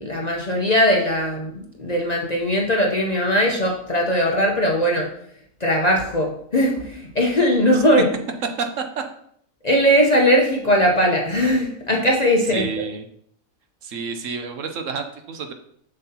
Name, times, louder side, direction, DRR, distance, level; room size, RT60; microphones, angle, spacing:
voice 1, 0.0-5.1 5.6-8.1 9.6-12.6, equal, 35° left, 0 dB, 0.7 m, -19 dB
voice 2, 12.5-13.0 13.8-15.5, right 5 dB, 65° right, 6 dB, 1.0 m, -29 dB
7.4 x 6.5 x 2.8 m, 0.68 s
omnidirectional pair, 1.5 m